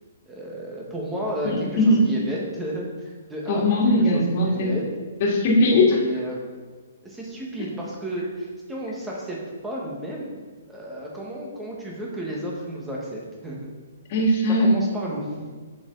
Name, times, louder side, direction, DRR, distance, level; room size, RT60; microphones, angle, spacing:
voice 1, 0.3-4.8 5.9-6.4 7.0-9.4 9.6-10.3 10.7-13.6 14.5-15.5, right 1 dB, 5° right, -4 dB, 1.5 m, -32 dB
voice 2, 1.4-2.0 3.5-4.7 5.2-6.0 14.1-14.8, left 1 dB, 40° left, -3 dB, 2.3 m, -19 dB
7.4 x 6.7 x 4.0 m, 1.4 s
hypercardioid pair, 160°, 0 cm